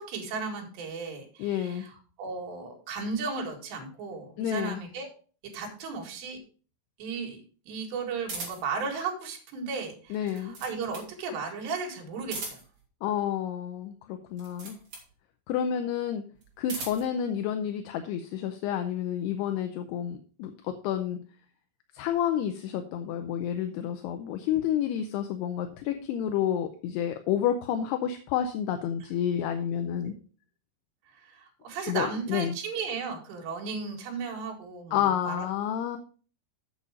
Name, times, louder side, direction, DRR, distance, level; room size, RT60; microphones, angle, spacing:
voice 1, 0.1-1.9 2.2-5.1 5.5-6.4 7.0-7.4 7.7-12.6 30.1-30.2 31.1-35.5, right 5 dB, 80° right, 1 dB, 4.3 m, -35 dB
voice 2, 1.4-1.8 4.4-4.8 10.1-10.6 13.0-14.8 15.5-16.2 16.6-21.2 21.9-30.1 31.9-32.6 34.9-36.0, left 9 dB, 80° left, 6 dB, 2.7 m, -30 dB
sound 1, 8.2-8.8 10.1-11.1 12.2-12.8 14.3-15.1 16.4-17.1, right 3 dB, 40° right, 4.0 m, -39 dB
8.4 x 7.0 x 5.0 m, 0.39 s
omnidirectional pair, 4.9 m